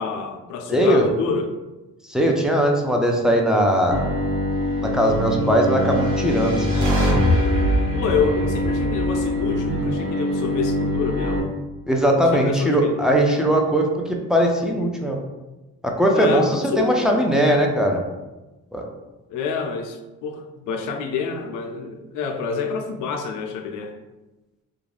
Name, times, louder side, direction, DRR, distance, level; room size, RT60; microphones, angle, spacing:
voice 1, 0.0-1.6 7.9-11.5 12.3-13.0 16.1-17.1 19.3-23.9, left 5 dB, 85° left, 4 dB, 0.5 m, -27 dB
voice 2, 0.7-1.1 2.1-4.0 4.8-6.9 11.9-15.2 15.8-18.0 18.7-18.8, equal, ahead, 0 dB, 0.4 m, -19 dB
Bowed string instrument, 3.9-11.4, equal, 45° right, 0.8 m, -24 dB
sound 1, 5.7-10.0, equal, 85° right, 0.8 m, -24 dB
2.4 x 2.2 x 3.2 m, 1.1 s
cardioid pair, 90°, 30 cm